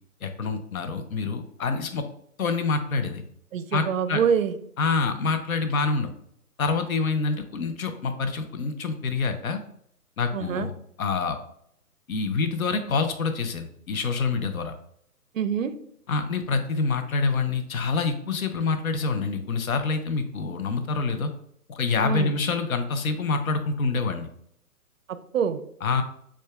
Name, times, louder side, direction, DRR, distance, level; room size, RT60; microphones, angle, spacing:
voice 1, 0.2-2.0 2.4-3.2 3.7-4.2 4.8-6.1 6.6-9.6 10.2-10.7 11.0-11.4 12.1-14.7 16.1-21.3 21.7-24.3 25.8-26.0, left 4 dB, 65° left, 8 dB, 0.7 m, -26 dB
voice 2, 3.5-4.6 10.3-10.7 15.3-15.7 22.0-22.3 25.1-25.6, right 7 dB, 60° right, 11 dB, 0.5 m, -25 dB
6.2 x 2.3 x 2.4 m, 0.68 s
hypercardioid pair, 140°, 45 cm